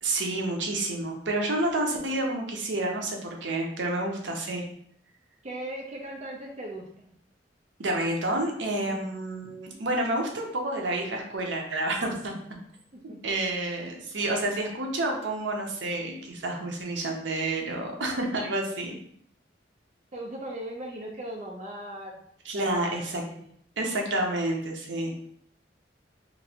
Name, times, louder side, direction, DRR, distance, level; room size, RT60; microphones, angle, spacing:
voice 1, 0.0-4.6 7.8-12.3 13.0-19.0 22.5-23.2 23.8-25.1, right 2 dB, 80° right, 1 dB, 0.6 m, -29 dB
voice 2, 5.4-7.2 8.8-9.1 12.9-13.2 20.1-22.2 22.5-23.4, right 1 dB, 35° right, -1 dB, 0.4 m, -39 dB
3.0 x 2.5 x 2.7 m, 0.66 s
head